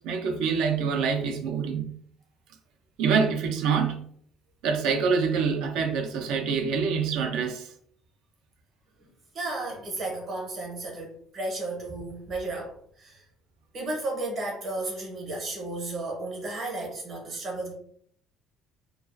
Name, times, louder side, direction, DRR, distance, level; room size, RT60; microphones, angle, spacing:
voice 1, 0.0-1.9 3.0-4.0 4.6-7.7, right 6 dB, 70° right, 5 dB, 0.4 m, -26 dB
voice 2, 9.3-13.2 13.7-17.7, right 2 dB, 35° right, -1 dB, 0.7 m, -33 dB
2.3 x 2.3 x 2.4 m, 0.63 s
cardioid pair, 170°, 0 cm